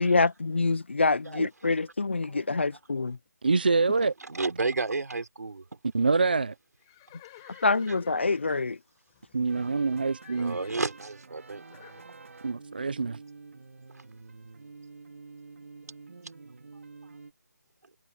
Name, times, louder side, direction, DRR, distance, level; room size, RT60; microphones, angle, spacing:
voice 1, 0.0-3.2 7.6-8.8, left 3 dB, 40° left, 0.3 m, -26 dB
voice 2, 3.4-4.1 5.9-6.5 9.3-10.6 12.4-13.2, right 4 dB, 35° right, 0.4 m, -25 dB
voice 3, 4.2-5.6 7.4-7.7 10.3-11.6 13.9-14.0, right 3 dB, 70° right, 4.3 m, -32 dB
Livestock farm animals working animals, 6.8-9.9 10.2-10.9 11.7-12.1, left 17 dB, 10° left, 3.9 m, -53 dB
sound 1, 9.5-17.3, right 4 dB, 50° right, 3.0 m, -49 dB
hypercardioid pair, 180°, 9 cm